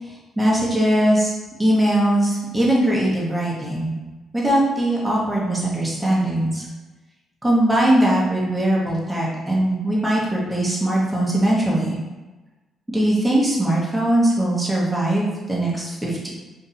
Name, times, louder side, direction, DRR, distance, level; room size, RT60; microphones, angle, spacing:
voice 1, 0.0-1.3 1.6-4.0 4.3-6.6 7.4-12.0 12.9-16.3, right 1 dB, 5° right, -5 dB, 0.9 m, -20 dB
2.7 x 2.5 x 4.0 m, 1.2 s
cardioid pair, 90°, 0 cm